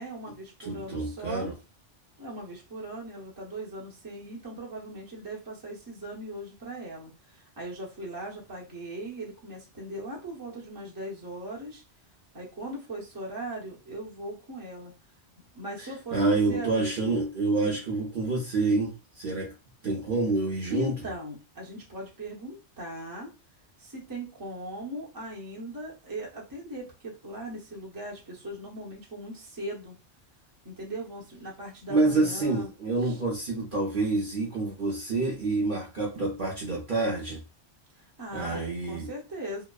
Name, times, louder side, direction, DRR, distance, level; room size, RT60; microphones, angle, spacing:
voice 1, 0.0-1.5 2.2-11.8 12.3-14.9 15.4-17.1 17.5-17.8 20.7-23.3 23.8-29.9 30.6-32.7 33.0-33.2 38.2-39.6, right 1 dB, 20° right, 0.7 m, -39 dB
voice 2, 0.7-1.5 15.8-19.5 19.8-20.9 31.9-37.4 38.3-39.1, right 3 dB, 55° right, 0.7 m, -27 dB
2.8 x 2.0 x 2.2 m
omnidirectional pair, 1.2 m